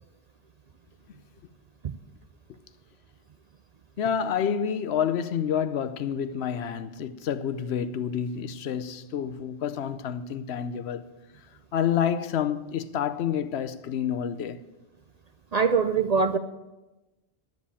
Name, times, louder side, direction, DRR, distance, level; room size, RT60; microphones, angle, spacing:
voice 1, 4.0-11.1 11.7-14.6, left 8 dB, 75° left, 0.9 m, -28 dB
voice 2, 15.5-16.4, right 5 dB, 50° right, 0.5 m, -23 dB
10.5 x 7.4 x 8.4 m
omnidirectional pair, 1.1 m